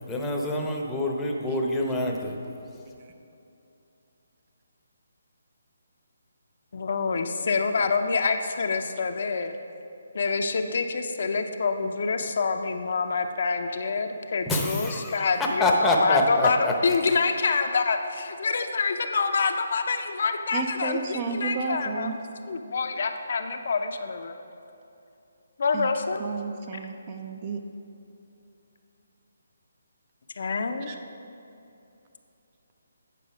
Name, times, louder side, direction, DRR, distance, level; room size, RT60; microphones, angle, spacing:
voice 1, 0.1-2.4 14.5-16.7, left 1 dB, 10° left, -1 dB, 0.8 m, -26 dB
voice 2, 6.7-9.5 10.1-22.1 22.5-24.3 25.6-26.2 30.3-30.9, left 4 dB, 60° left, 6 dB, 0.6 m, -26 dB
voice 3, 20.5-22.2 25.7-25.9 26.2-27.6 30.9-31.0, right 5 dB, 35° right, 5 dB, 0.6 m, -32 dB
9.2 x 5.4 x 5.0 m, 2.7 s
figure-of-eight pair, 150°, 0 cm